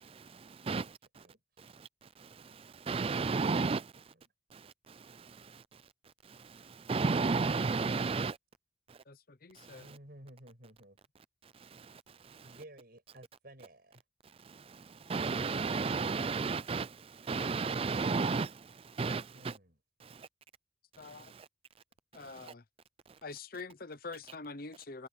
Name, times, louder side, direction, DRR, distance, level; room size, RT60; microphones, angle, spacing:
voice 1, 0.0-1.2 1.8-1.9 2.2-3.9 4.5-5.6 6.3-8.4 9.6-9.8 11.6-12.0 12.3-12.6 14.5-19.6 20.0-20.3 21.1-21.5 22.4-22.5, right 4 dB, 30° right, 0.4 m, -34 dB
voice 2, 9.1-9.9 21.0-21.3 22.1-22.6 23.2-25.1, left 3 dB, 45° left, 0.8 m, -45 dB
voice 3, 9.7-11.0 12.4-14.0 19.3-19.8, right 1 dB, 50° right, 5.8 m, -54 dB
head